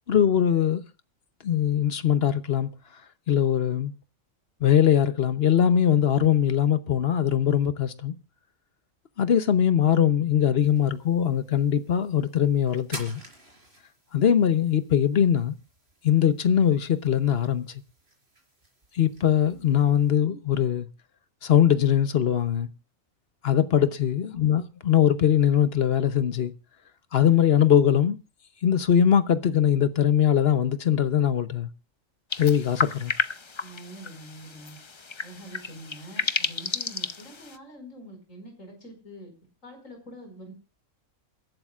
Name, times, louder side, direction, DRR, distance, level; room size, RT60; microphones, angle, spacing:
voice 1, 0.1-0.8 1.4-2.7 3.3-3.9 4.6-8.1 9.2-13.2 14.1-15.5 16.0-17.8 18.9-20.9 21.4-22.7 23.4-26.5 27.1-28.2 28.6-31.7 32.4-33.1, left 9 dB, 55° left, 1.0 m, -21 dB
sound 1, 10.6-20.1, right 1 dB, 50° right, 4.4 m, -50 dB
sound 2, 32.3-37.6, left 4 dB, 35° left, 0.5 m, -32 dB
voice 2, 33.6-34.8 35.2-39.3 39.6-40.5, right 1 dB, 70° left, 5.3 m, -45 dB
28.0 x 11.5 x 2.4 m
omnidirectional pair, 1.4 m